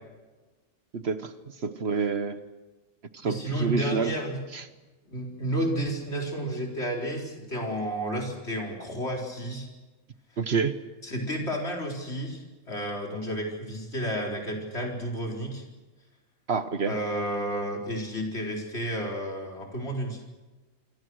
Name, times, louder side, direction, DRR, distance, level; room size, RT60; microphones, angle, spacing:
voice 1, 0.9-1.3 1.6-2.4 3.1-4.1 4.5-4.7 10.4-10.7 16.5-16.9, right 5 dB, 55° right, 11 dB, 1.3 m, -28 dB
voice 2, 3.2-4.4 5.0-9.7 11.0-15.6 16.8-20.3, right 1 dB, 55° left, 0 dB, 4.8 m, -31 dB
26.5 x 24.5 x 6.4 m, 1.2 s
omnidirectional pair, 1.3 m